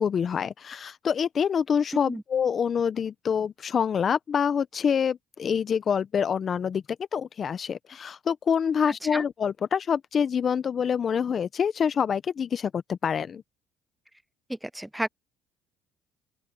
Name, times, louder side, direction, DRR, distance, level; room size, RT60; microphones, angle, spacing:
voice 1, 0.0-6.8 7.1-13.4, left 7 dB, 45° left, 1.1 m, -26 dB
voice 2, 14.5-15.1, right 1 dB, 5° right, 0.3 m, -31 dB
open air
supercardioid pair, 75°, 0 cm